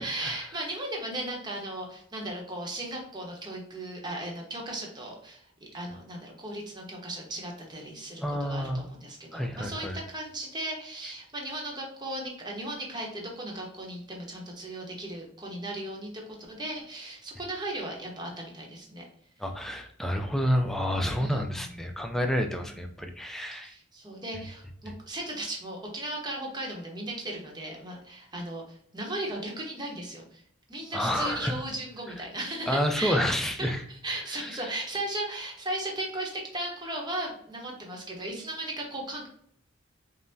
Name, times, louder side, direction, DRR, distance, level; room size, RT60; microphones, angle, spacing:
voice 1, 0.0-19.0 21.2-21.7 22.6-22.8 23.6-30.4 30.7-39.3, right 1 dB, 20° right, 0 dB, 0.8 m, -36 dB
voice 2, 8.2-8.9 9.3-10.0 19.4-23.7 24.9-25.0 30.9-31.6 32.7-33.8 34.3-34.7, equal, ahead, 4 dB, 0.3 m, -29 dB
5.4 x 2.0 x 2.6 m, 0.65 s
head